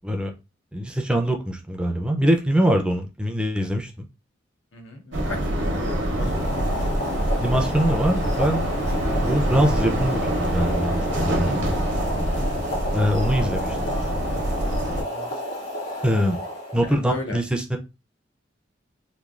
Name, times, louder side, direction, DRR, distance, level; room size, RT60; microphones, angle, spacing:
voice 1, 0.7-4.1 7.4-8.7 9.0-11.5 12.9-13.8 16.0-16.4 16.7-17.8, equal, 5° right, 3 dB, 0.4 m, -23 dB
voice 2, 4.7-7.6 12.2-12.5 14.9-15.3 16.8-17.4, left 2 dB, 85° left, 3 dB, 0.8 m, -36 dB
sound 1, 5.1-15.0, right 1 dB, 70° right, 0.7 m, -25 dB
Boiling, 6.1-17.1, left 1 dB, 60° left, 1.5 m, -32 dB
3.1 x 2.3 x 2.4 m, 0.27 s
head